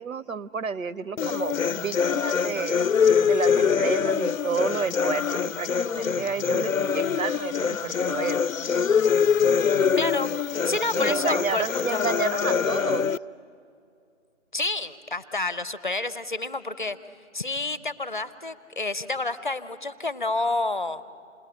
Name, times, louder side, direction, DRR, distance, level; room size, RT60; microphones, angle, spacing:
voice 1, 0.0-2.8 3.2-8.4 11.0-13.1, right 5 dB, 90° right, 15 dB, 0.7 m, -31 dB
sound 1, 1.2-13.2, left 6 dB, 90° left, 0.6 m, -24 dB
voice 2, 10.0-10.3 10.6-12.1 14.5-17.0 17.3-21.0, left 2 dB, 40° left, 14 dB, 0.6 m, -29 dB
27.0 x 20.0 x 8.8 m, 2.5 s
figure-of-eight pair, 165°, 39 cm